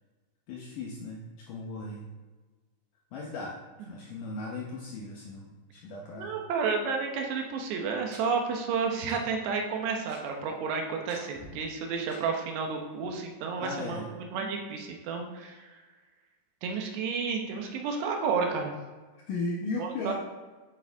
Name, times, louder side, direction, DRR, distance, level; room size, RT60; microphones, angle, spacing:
voice 1, 0.5-2.0 3.1-6.3 13.6-14.1 19.3-20.1, left 3 dB, 80° left, -2 dB, 1.9 m, -37 dB
voice 2, 6.2-15.7 16.6-18.7 19.8-20.1, right 5 dB, 75° right, 2 dB, 3.0 m, -31 dB
Tick-tock, 7.2-7.3 8.1-8.2 9.1-9.2 9.5-9.6 9.8-10.2 11.1-11.5 12.1-12.2 12.6-12.7 13.0-13.1, right 2 dB, 45° right, 4.1 m, -49 dB
11.0 x 7.8 x 3.5 m, 1.3 s
omnidirectional pair, 5.1 m